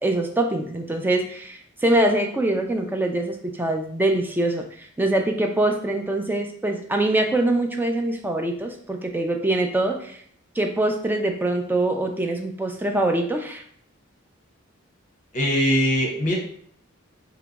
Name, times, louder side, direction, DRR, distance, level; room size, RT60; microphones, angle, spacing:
voice 1, 0.0-10.2 10.6-13.6, right 1 dB, 10° right, 3 dB, 0.4 m, -24 dB
voice 2, 15.3-16.3, equal, 40° left, -1 dB, 0.9 m, -21 dB
2.9 x 2.3 x 3.9 m, 0.62 s
head